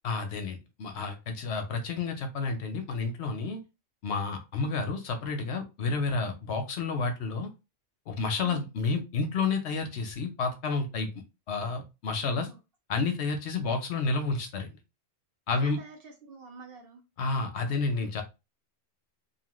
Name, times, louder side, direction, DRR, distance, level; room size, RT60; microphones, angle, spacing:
voice 1, 0.0-3.6 4.0-7.5 8.1-11.1 11.5-12.5 12.9-14.7 15.5-15.8 17.2-18.2, left 4 dB, 65° left, 0.8 m, -30 dB
voice 2, 12.2-12.6 15.5-17.0, right 4 dB, 55° right, 0.7 m, -47 dB
2.7 x 2.4 x 2.9 m
omnidirectional pair, 1.3 m